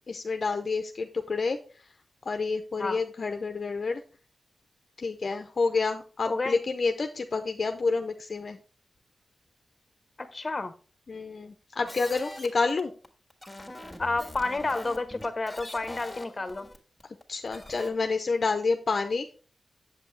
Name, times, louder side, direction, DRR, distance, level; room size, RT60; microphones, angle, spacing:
voice 1, 0.1-1.6 2.3-4.0 5.0-8.6 11.1-12.9 17.3-19.3, left 4 dB, 55° left, 6 dB, 0.6 m, -29 dB
voice 2, 6.3-6.6 10.2-10.7 14.0-16.7, left 3 dB, 35° left, 10 dB, 0.9 m, -30 dB
sound 1, 11.8-17.9, left 1 dB, 10° left, 1.7 m, -43 dB
7.5 x 7.3 x 3.2 m, 0.38 s
wide cardioid pair, 80°, 0 cm